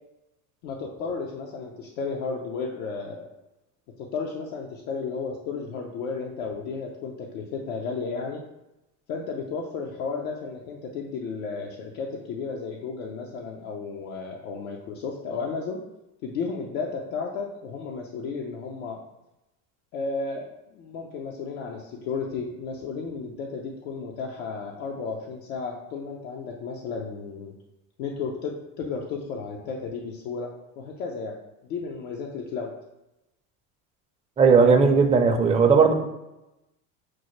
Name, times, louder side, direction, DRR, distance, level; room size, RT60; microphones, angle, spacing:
voice 1, 0.6-3.3 4.0-8.4 9.1-15.8 16.2-19.0 19.9-27.5 28.0-30.5 30.8-31.4 31.6-32.7, left 4 dB, 80° left, -1 dB, 0.6 m, -33 dB
voice 2, 34.4-35.9, right 5 dB, 15° right, 3 dB, 0.4 m, -17 dB
6.1 x 2.1 x 3.0 m, 0.93 s
supercardioid pair, 95°, 40 cm